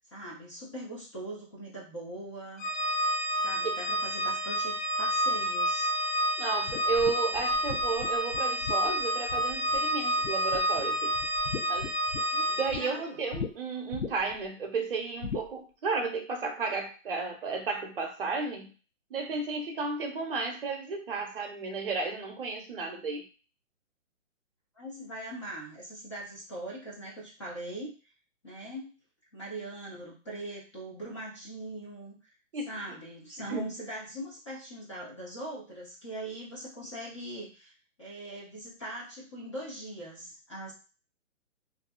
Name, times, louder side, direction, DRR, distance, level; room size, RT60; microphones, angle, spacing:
voice 1, 0.1-2.9 3.4-5.9 12.3-13.2 24.7-28.0 28.4-28.9 29.3-32.3 32.7-37.7 38.0-40.7, right 1 dB, 25° left, -4 dB, 0.5 m, -41 dB
Organ, 2.6-13.0, equal, 70° left, 1.1 m, -29 dB
voice 2, 6.4-11.1 11.7-11.9 12.5-18.7 19.1-23.2 32.5-32.7 33.5-33.7, right 4 dB, 45° right, 3 dB, 0.7 m, -33 dB
sound 1, 6.7-9.9 10.2-10.8 11.1-12.8 13.3-13.5 13.9-14.4 15.2-15.5, left 5 dB, 90° left, 0.7 m, -38 dB
2.6 x 2.5 x 2.2 m, 0.34 s
hypercardioid pair, 160°, 40 cm